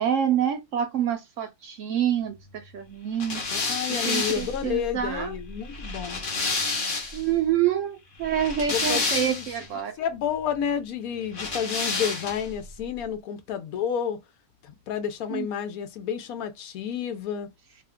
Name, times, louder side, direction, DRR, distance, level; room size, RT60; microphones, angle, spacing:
voice 1, 0.0-3.4 4.0-5.3 7.1-10.0 15.3-15.5, right 9 dB, 65° right, 0.8 m, -27 dB
sound 1, 3.2-7.3 8.2-9.7 11.3-12.6, left 3 dB, 45° left, 0.8 m, -29 dB
voice 2, 3.5-6.2 8.7-9.4 10.0-14.2 14.9-17.5, left 8 dB, 75° left, 1.0 m, -30 dB
2.8 x 2.2 x 3.5 m
omnidirectional pair, 1.6 m